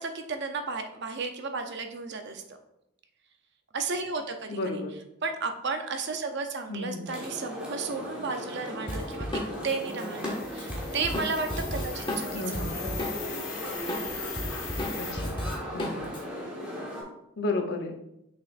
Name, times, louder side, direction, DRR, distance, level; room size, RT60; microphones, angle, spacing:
voice 1, 0.0-2.6 3.7-4.8 5.2-12.8, right 4 dB, 60° right, 6 dB, 0.7 m, -33 dB
voice 2, 4.5-4.9 6.7-7.1 12.3-12.8 15.0-15.4 15.7-16.2 17.4-18.0, left 2 dB, 55° left, 3 dB, 0.8 m, -32 dB
sound 1, 7.1-17.0, equal, 5° right, 1.4 m, -38 dB
Drum kit, 8.9-13.4 13.7-16.2, left 1 dB, 25° left, 1.0 m, -34 dB
sound 2, 9.8-15.1, left 5 dB, 75° left, 1.4 m, -40 dB
6.2 x 6.0 x 2.5 m, 0.83 s
head